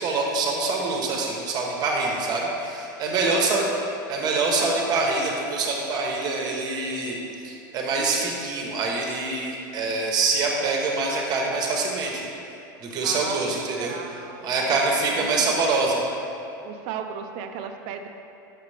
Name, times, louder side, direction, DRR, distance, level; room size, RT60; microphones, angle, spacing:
voice 1, 0.0-3.6 4.1-7.2 7.4-12.3 12.8-13.9 14.4-16.0, right 3 dB, 35° right, -1 dB, 1.0 m, -25 dB
voice 2, 3.2-3.7 13.0-15.0 15.4-15.5 16.6-18.1, right 7 dB, 50° right, 5 dB, 0.5 m, -36 dB
6.6 x 5.1 x 3.3 m, 2.8 s
supercardioid pair, 120°, 11 cm